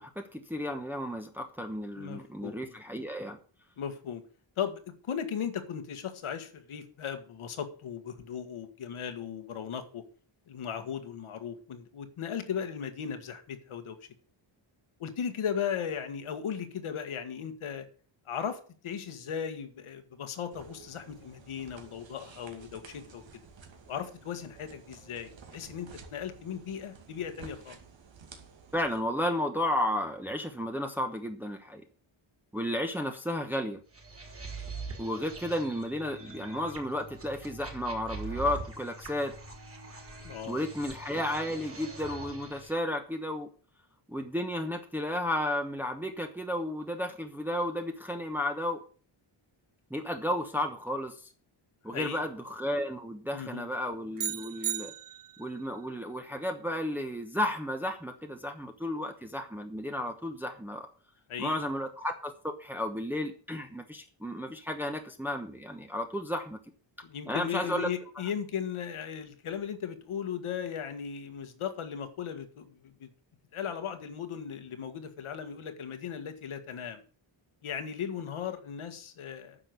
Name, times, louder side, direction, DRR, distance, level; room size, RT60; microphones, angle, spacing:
voice 1, 0.0-3.4 28.7-31.8 32.5-33.8 35.0-39.3 40.5-43.5 44.1-48.8 49.9-51.2 51.8-54.9 55.4-60.9 61.4-66.6 67.3-67.9, left 1 dB, 5° right, 4 dB, 1.0 m, -33 dB
voice 2, 2.0-2.6 3.8-4.2 4.6-10.0 10.5-14.0 15.0-17.9 18.3-23.2 23.9-27.8 40.2-40.6 51.9-52.2 53.3-53.7 61.3-61.6 67.0-73.1 73.5-77.0 77.6-79.6, left 8 dB, 90° left, 8 dB, 1.9 m, -37 dB
sound 1, 20.5-29.0, right 5 dB, 65° right, 2.5 m, -52 dB
sound 2, 33.9-42.7, right 3 dB, 25° right, 3.2 m, -43 dB
sound 3, 54.2-55.6, right 9 dB, 45° right, 1.0 m, -35 dB
9.8 x 6.6 x 8.0 m, 0.41 s
wide cardioid pair, 165°, 48 cm